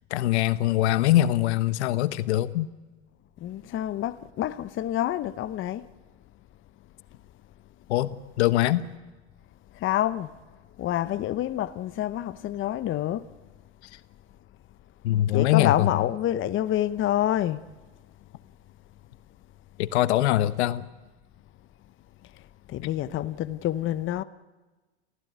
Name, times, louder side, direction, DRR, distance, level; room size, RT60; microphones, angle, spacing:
voice 1, 0.1-2.7 7.9-8.9 15.0-16.0 19.8-20.9, left 14 dB, 75° left, 1.2 m, -23 dB
voice 2, 3.4-5.9 9.7-10.3 10.8-13.3 15.3-17.6 22.7-24.2, left 12 dB, 35° left, 0.9 m, -27 dB
27.5 x 16.0 x 9.5 m
hypercardioid pair, 105°, 34 cm